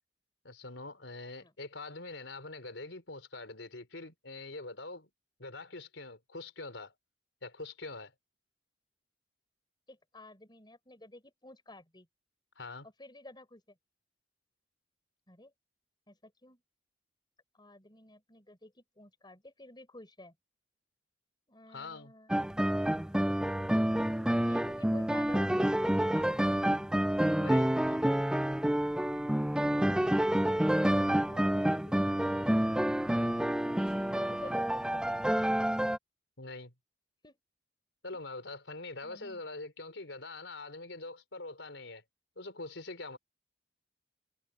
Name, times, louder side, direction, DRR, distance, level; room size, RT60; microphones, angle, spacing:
voice 1, 0.4-5.1 5.4-6.9 7.4-8.1 12.6-12.9 21.7-22.1 27.4-27.7 36.4-36.7 38.0-42.0 42.4-43.2, left 3 dB, 85° left, 3.9 m, -44 dB
voice 2, 9.9-12.1 13.0-13.8 15.3-15.5 16.1-16.6 17.5-20.3 21.5-22.8 23.9-24.0 24.4-26.8 27.7-28.0 29.1-29.2 29.5-30.1 31.3-32.8 33.6-33.9 34.1-35.6 37.2-37.4 38.1-38.2 39.0-39.4, left 1 dB, 25° left, 5.0 m, -52 dB
sound 1, 22.3-36.0, right 1 dB, 5° right, 0.3 m, -28 dB
head